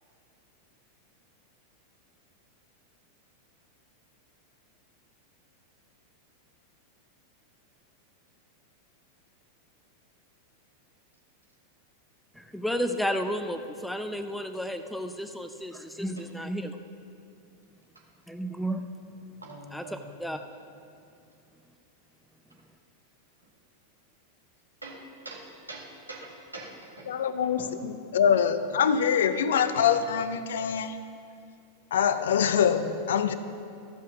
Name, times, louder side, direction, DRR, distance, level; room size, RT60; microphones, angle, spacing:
voice 1, 12.3-16.8 18.3-18.9 19.7-20.4, equal, ahead, 8 dB, 0.5 m, -32 dB
voice 2, 19.4-20.1 24.8-27.7 28.2-28.3, right 2 dB, 80° right, -2 dB, 1.9 m, -44 dB
voice 3, 27.1-27.6 27.8-31.0 31.9-33.3, left 7 dB, 60° left, 12 dB, 0.5 m, -24 dB
14.0 x 5.6 x 5.9 m, 2.5 s
figure-of-eight pair, 90°, 0 cm